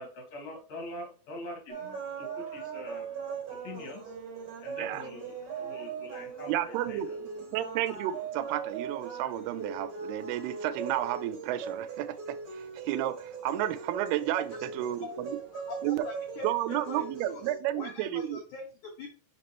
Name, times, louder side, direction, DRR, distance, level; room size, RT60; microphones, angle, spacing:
voice 1, 0.0-3.1 3.5-4.0 4.6-7.1, left 1 dB, 50° left, 2.7 m, -44 dB
sound 1, 1.7-17.5, right 5 dB, 55° right, 2.7 m, -40 dB
voice 2, 6.5-15.4 15.8-16.1 16.4-18.4, right 13 dB, 85° right, 2.6 m, -32 dB
voice 3, 15.5-17.4 17.8-19.1, left 4 dB, 85° left, 1.6 m, -43 dB
5.9 x 5.4 x 3.0 m
omnidirectional pair, 4.7 m